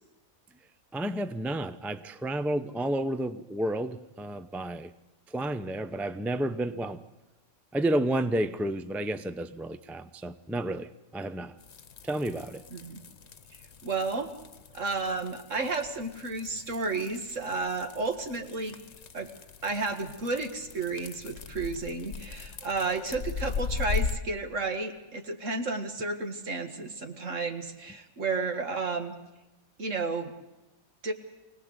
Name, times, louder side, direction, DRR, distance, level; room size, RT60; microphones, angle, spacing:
voice 1, 0.9-4.9 5.3-7.0 7.7-11.6 12.0-12.6, right 1 dB, ahead, 0.5 m, -31 dB
sound 1, 11.6-24.2, left 5 dB, 55° left, 1.3 m, -39 dB
voice 2, 12.7-13.0 13.8-14.3 14.7-18.8 19.1-19.3 19.6-29.1 29.8-30.3 31.0-31.1, right 3 dB, 65° right, 2.3 m, -32 dB
25.0 x 18.5 x 8.1 m
omnidirectional pair, 1.4 m